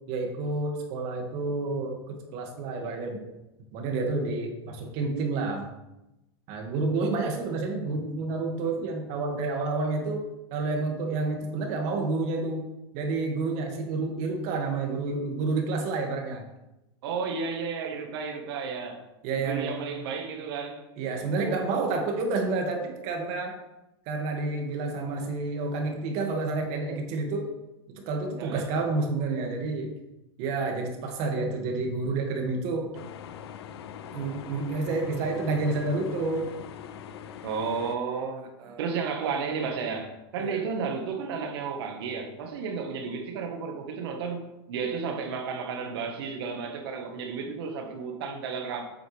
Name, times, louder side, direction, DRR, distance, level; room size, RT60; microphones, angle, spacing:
voice 1, 0.1-3.2 3.7-5.7 6.5-10.2 10.5-12.6 12.9-16.4 19.2-19.7 21.0-23.6 24.1-27.5 28.0-29.9 30.4-32.9 34.1-36.5 38.6-38.9 40.4-40.6, right 3 dB, 55° right, 2.2 m, -29 dB
voice 2, 17.0-19.0 19.4-20.8 28.4-28.7 37.4-38.5 38.8-48.8, right 5 dB, 75° right, 1.6 m, -32 dB
sound 1, 32.9-38.0, left 8 dB, 80° left, 0.6 m, -42 dB
8.5 x 7.4 x 3.5 m
hypercardioid pair, 115°, 13 cm